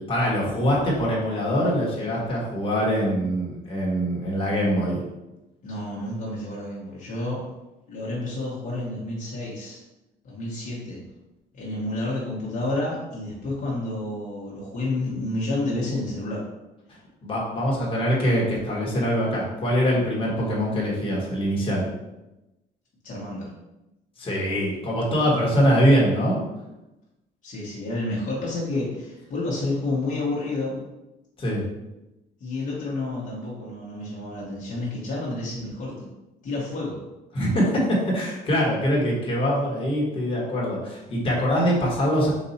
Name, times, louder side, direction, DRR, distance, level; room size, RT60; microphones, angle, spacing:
voice 1, 0.0-5.0 17.2-21.8 24.2-26.4 31.4-31.6 37.3-42.3, equal, 30° left, -4 dB, 1.4 m, -23 dB
voice 2, 5.6-7.5 7.9-9.8 10.2-11.0 11.5-16.4 23.0-23.5 27.4-30.8 32.4-36.1 36.4-37.0, left 2 dB, 50° left, -5 dB, 1.2 m, -30 dB
4.1 x 2.6 x 4.1 m, 0.99 s
cardioid pair, 110°, 17 cm